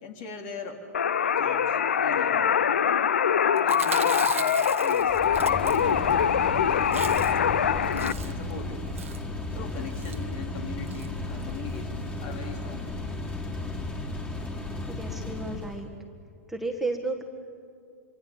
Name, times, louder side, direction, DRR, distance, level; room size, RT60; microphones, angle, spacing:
voice 1, 0.0-0.8 1.4-2.6 3.5-6.1 6.6-7.1 7.5-8.0 8.2-8.9 9.5-12.9 13.2-13.4, left 5 dB, 45° left, 3 dB, 3.7 m, -40 dB
sound 1, 0.9-8.1, left 8 dB, 70° left, 0.7 m, -23 dB
Chewing mastication, 3.6-6.2 6.5-6.6 6.8-7.5 7.8-8.5 8.9-9.3 9.9-10.2 10.9-11.1 11.4-11.5 11.7-11.8, right 7 dB, 75° right, 1.3 m, -38 dB
sound 2, 5.0-15.9, left 2 dB, 15° left, 4.0 m, -34 dB
voice 2, 14.9-15.9 16.5-17.2, right 2 dB, 5° right, 1 dB, 1.7 m, -32 dB
26.5 x 24.5 x 7.4 m, 2.3 s
figure-of-eight pair, 105°, 7 cm